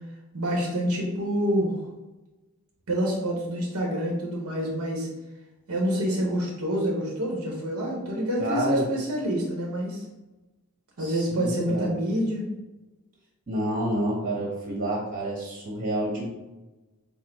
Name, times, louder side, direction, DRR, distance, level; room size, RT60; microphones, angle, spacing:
voice 1, 0.3-1.9 2.9-5.1 5.7-10.0 11.0-12.5, equal, 85° right, -2 dB, 0.9 m, -27 dB
voice 2, 8.4-8.9 11.0-11.8 13.5-16.3, right 1 dB, 40° right, -4 dB, 1.3 m, -28 dB
4.1 x 2.0 x 4.2 m, 1.1 s
head